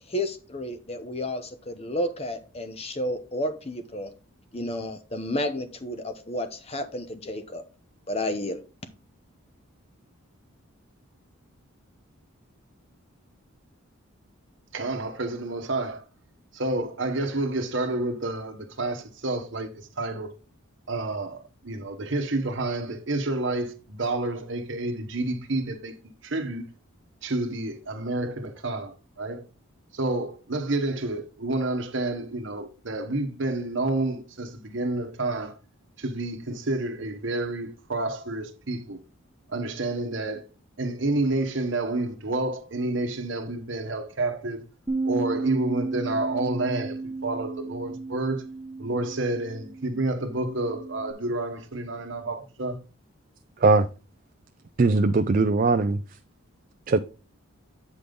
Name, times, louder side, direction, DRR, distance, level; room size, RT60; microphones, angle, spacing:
voice 1, 0.1-4.1 4.5-7.6 8.1-8.6, left 1 dB, 30° left, 0.9 m, -31 dB
voice 2, 14.7-16.0 16.5-20.3 20.9-25.9 26.2-26.7 27.2-29.4 29.9-35.6 36.0-39.0 39.5-40.4 40.8-44.6 45.0-48.5 48.8-52.8, right 2 dB, 55° right, 1.0 m, -29 dB
Bass guitar, 44.9-51.1, right 3 dB, 15° right, 1.1 m, -33 dB
voice 3, 54.8-56.0 56.9-57.0, right 3 dB, 40° right, 0.4 m, -20 dB
8.2 x 5.1 x 3.8 m
head